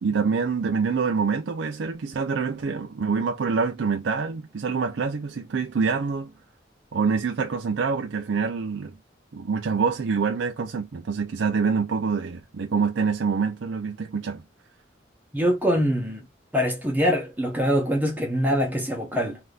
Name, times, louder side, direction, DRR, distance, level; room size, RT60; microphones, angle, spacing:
voice 1, 0.0-6.3 6.9-8.9 9.3-14.4, right 5 dB, 75° right, 0.4 m, -26 dB
voice 2, 15.3-16.2 16.5-19.4, equal, 10° right, 0.8 m, -24 dB
3.4 x 2.6 x 2.3 m
head